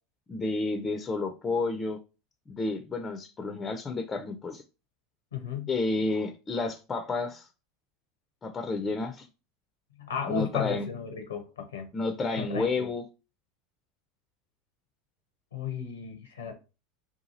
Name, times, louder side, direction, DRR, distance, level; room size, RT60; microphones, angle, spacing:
voice 1, 0.3-2.0 2.5-4.6 5.7-7.5 8.4-9.3 10.3-10.9 11.9-13.0, left 3 dB, 25° left, 0.4 m, -30 dB
voice 2, 5.3-5.7 10.0-11.9 12.4-12.9 15.5-16.5, left 7 dB, 85° left, 0.6 m, -34 dB
2.8 x 2.3 x 2.7 m
hypercardioid pair, 80°, 0 cm